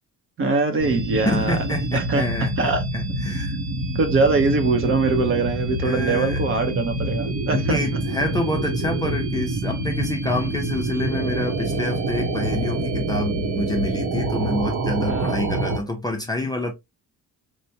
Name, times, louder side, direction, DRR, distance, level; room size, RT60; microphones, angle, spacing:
voice 1, 0.4-1.6 1.9-2.2 2.6-2.8 3.9-7.8 15.1-15.3, right 3 dB, 45° right, 0.8 m, -22 dB
sound 1, 0.8-15.8, right 2 dB, 70° right, 0.9 m, -26 dB
voice 2, 1.3-3.6 5.8-6.4 7.5-16.7, left 1 dB, 15° left, 0.4 m, -27 dB
4.3 x 2.1 x 2.6 m
cardioid pair, 175°, 30 cm